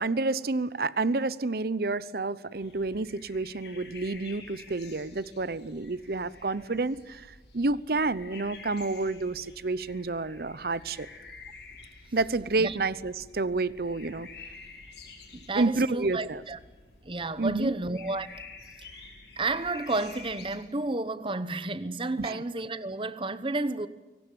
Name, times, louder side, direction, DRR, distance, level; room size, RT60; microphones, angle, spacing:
voice 1, 0.0-7.3 7.5-11.1 12.1-14.3 15.5-16.4 17.4-17.7 22.2-22.4, right 3 dB, 60° right, 0.8 m, -29 dB
sound 1, 2.5-20.6, left 4 dB, 70° left, 5.9 m, -49 dB
voice 2, 15.3-16.6 17.0-18.4 18.8-18.9 19.4-23.9, right 2 dB, 30° right, 1.0 m, -31 dB
23.0 x 18.5 x 9.3 m
head